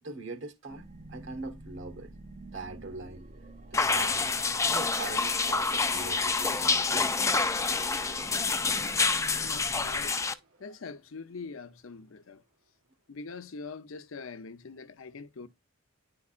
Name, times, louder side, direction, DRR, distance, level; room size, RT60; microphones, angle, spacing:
voice 1, 0.0-2.1 2.5-3.3 3.7-7.2 9.3-9.7 10.2-10.4, right 3 dB, 65° right, 1.3 m, -42 dB
sound 1, 0.7-10.1, right 2 dB, 35° right, 0.6 m, -49 dB
sound 2, 3.7-10.3, left 4 dB, 15° left, 0.4 m, -27 dB
sound 3, 4.6-12.2, right 4 dB, 80° right, 1.5 m, -53 dB
voice 2, 9.4-10.2 10.6-12.4 13.1-15.5, left 4 dB, 70° left, 0.6 m, -43 dB
9.6 x 4.6 x 2.4 m
head